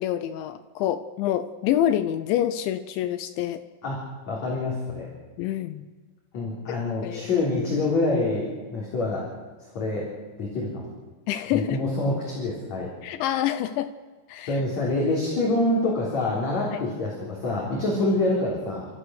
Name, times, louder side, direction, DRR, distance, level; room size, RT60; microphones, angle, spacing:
voice 1, 0.0-3.6 5.4-5.9 6.7-6.8 7.0-7.3 11.3-11.9 13.0-13.9 14.3-14.6, left 11 dB, 80° left, 10 dB, 2.8 m, -27 dB
voice 2, 3.8-5.1 6.3-9.3 9.7-10.1 10.4-10.9 11.5-12.9 14.5-18.9, left 2 dB, 35° left, -3 dB, 4.4 m, -26 dB
30.0 x 14.5 x 6.5 m, 1.4 s
omnidirectional pair, 5.9 m